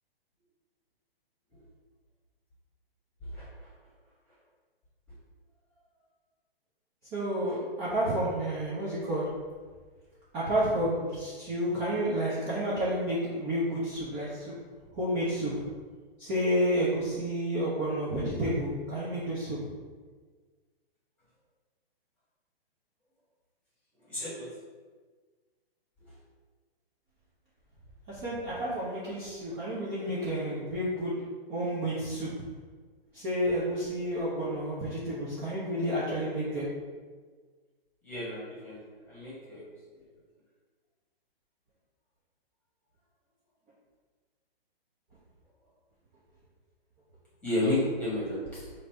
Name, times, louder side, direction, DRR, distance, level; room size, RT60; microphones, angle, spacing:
voice 1, 7.1-9.2 10.3-14.6 14.9-15.6 16.2-19.7 28.1-31.1 31.5-32.3 33.1-36.7, equal, 20° right, -9 dB, 0.6 m, -30 dB
voice 2, 24.1-24.4 38.0-38.8 39.1-39.6 47.4-48.6, left 1 dB, 5° left, -9 dB, 1.4 m, -31 dB
3.1 x 2.7 x 4.3 m, 1.5 s
hypercardioid pair, 140°, 30 cm